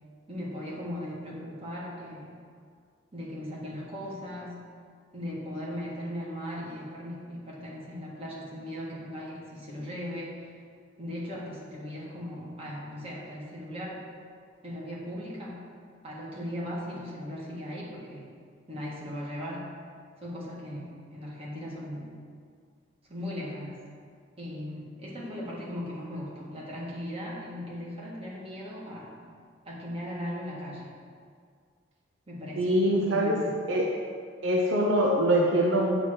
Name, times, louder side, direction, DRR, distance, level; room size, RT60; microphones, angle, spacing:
voice 1, 0.3-2.4 3.1-4.6 5.1-10.5 11.0-14.0 14.6-15.6 16.0-18.3 18.7-19.7 20.2-22.1 23.1-23.8 24.4-29.2 29.6-30.9 32.3-33.5, equal, 30° right, -6 dB, 1.7 m, -38 dB
voice 2, 32.6-34.0 34.4-36.0, right 1 dB, 80° right, 0 dB, 0.7 m, -24 dB
8.7 x 3.0 x 6.3 m, 2.1 s
head